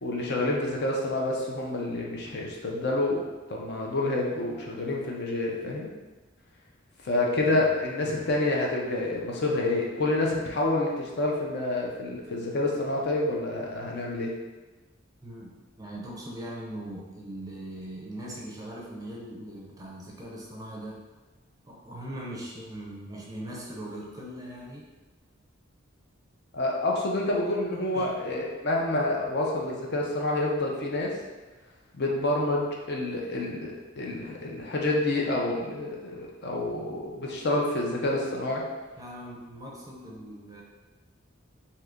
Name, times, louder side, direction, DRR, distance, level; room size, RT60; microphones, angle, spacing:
voice 1, 0.0-3.2 3.5-5.9 7.0-14.3 26.5-31.1 31.9-38.6, left 2 dB, 60° left, -1 dB, 0.6 m, -28 dB
voice 2, 15.2-21.0 21.7-24.9 27.9-28.2 39.0-40.6, right 1 dB, 20° right, -2 dB, 0.5 m, -40 dB
2.7 x 2.5 x 3.4 m, 1.2 s
head